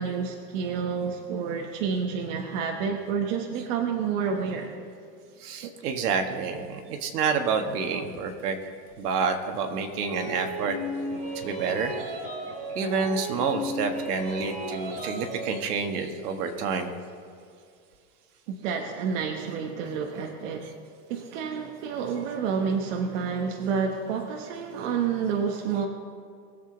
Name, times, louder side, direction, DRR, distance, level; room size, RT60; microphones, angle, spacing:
voice 1, 0.0-4.8 5.6-5.7 18.5-20.7 21.1-25.9, right 6 dB, 50° right, 2 dB, 1.2 m, -29 dB
voice 2, 5.4-8.6 9.0-10.8 11.3-12.1 12.7-16.9, right 5 dB, 70° right, 5 dB, 1.7 m, -28 dB
sound 1, 10.0-15.5, equal, 15° right, 3.1 m, -34 dB
20.5 x 8.0 x 3.9 m, 2.3 s
supercardioid pair, 155°, 48 cm